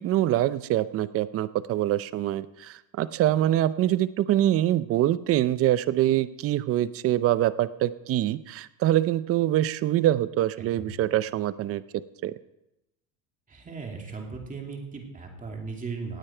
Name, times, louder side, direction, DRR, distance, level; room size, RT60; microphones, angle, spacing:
voice 1, 0.0-11.8 12.2-12.3, right 13 dB, 35° right, 16 dB, 0.5 m, -24 dB
voice 2, 13.5-16.2, right 4 dB, 15° right, 1 dB, 2.5 m, -37 dB
18.5 x 8.6 x 4.5 m, 0.88 s
supercardioid pair, 135°, 44 cm